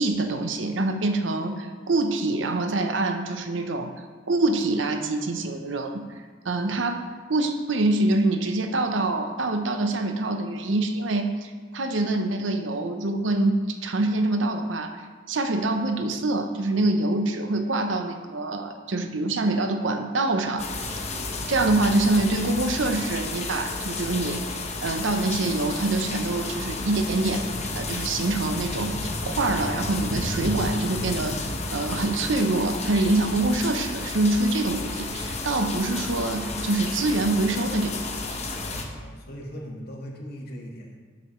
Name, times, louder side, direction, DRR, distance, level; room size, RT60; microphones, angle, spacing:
voice 1, 0.0-3.9 4.3-6.1 6.4-15.0 15.3-20.7 21.5-27.4 27.7-31.4 31.7-38.4, right 2 dB, 80° right, 6 dB, 0.8 m, -25 dB
sound 1, 20.6-38.8, left 3 dB, 35° left, 0.9 m, -32 dB
voice 2, 38.8-41.0, equal, 55° left, 0 dB, 1.6 m, -39 dB
11.5 x 6.8 x 3.2 m, 1.5 s
head